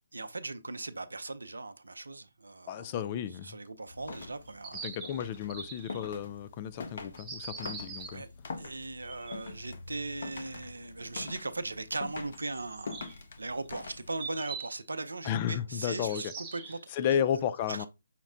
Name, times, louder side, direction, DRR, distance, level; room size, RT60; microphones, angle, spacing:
voice 1, 0.1-2.9 3.4-4.9 8.1-8.3 8.6-17.2 17.7-17.9, right 2 dB, 80° right, 0.6 m, -39 dB
voice 2, 2.7-3.6 4.8-8.2 15.2-16.3 16.9-17.9, left 9 dB, 30° left, 0.3 m, -33 dB
sound 1, 3.9-14.4, left 4 dB, 55° left, 0.8 m, -45 dB
sound 2, 4.5-6.2 7.2-8.2 8.9-9.5 11.9-12.0 12.3-14.8 15.9-17.0, right 5 dB, 15° right, 0.8 m, -44 dB
5.8 x 2.1 x 3.6 m
figure-of-eight pair, 145°, 0 cm